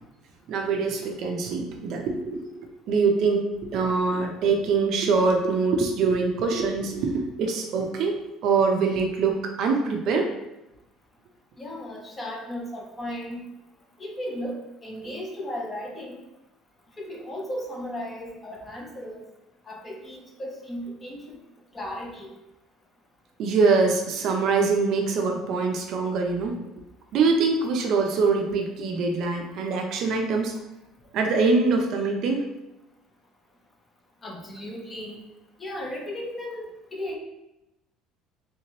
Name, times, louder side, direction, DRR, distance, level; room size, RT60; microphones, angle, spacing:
voice 1, 0.5-3.5 3.7-8.2 8.4-10.3 23.4-26.6 27.1-30.5 31.1-32.4, right 4 dB, 55° right, 2 dB, 0.5 m, -24 dB
voice 2, 11.6-13.4 14.0-16.2 17.0-19.3 19.7-21.4 21.7-22.3 34.2-35.2 35.6-37.2, left 1 dB, 20° left, 0 dB, 0.6 m, -35 dB
3.4 x 2.9 x 2.8 m, 0.93 s
cardioid pair, 155°, 0 cm